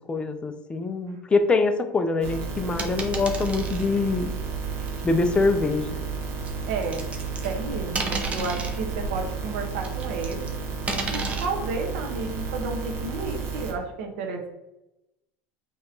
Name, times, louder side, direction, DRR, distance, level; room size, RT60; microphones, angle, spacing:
voice 1, 0.1-4.3 5.0-5.9, left 3 dB, 15° left, 9 dB, 0.4 m, -24 dB
sound 1, 2.2-13.7, right 5 dB, 45° right, 1.1 m, -32 dB
sound 2, 2.8-3.9 4.9-5.0 6.5-7.6 7.9-8.8 9.8-10.5 10.9-11.5, right 3 dB, 20° right, 0.7 m, -32 dB
voice 2, 6.7-7.0 7.4-10.5 10.9-14.5, right 3 dB, 85° right, 3 dB, 0.9 m, -32 dB
5.3 x 2.9 x 2.7 m, 0.94 s
supercardioid pair, 135°, 6 cm